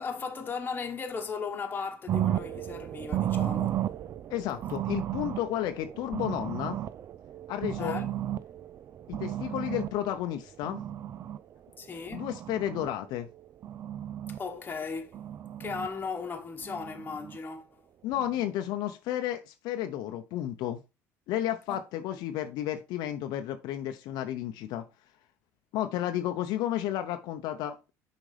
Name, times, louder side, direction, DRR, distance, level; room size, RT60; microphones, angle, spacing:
voice 1, 0.0-3.8 7.8-8.1 11.8-12.3 14.3-15.2 15.6-17.8 21.7-21.8 22.1-22.2, left 5 dB, 25° left, 1.3 m, -37 dB
sound 1, 2.1-11.4 11.9-12.9 13.4-14.4 15.1-15.9 16.6-17.4 18.1-18.5, right 11 dB, 45° right, 0.4 m, -34 dB
voice 2, 4.3-6.8 7.5-8.0 9.1-10.8 12.1-13.3 18.0-20.8 21.3-24.9 25.7-27.9, left 12 dB, 70° left, 0.7 m, -32 dB
6.3 x 5.1 x 3.3 m
supercardioid pair, 105°, 7 cm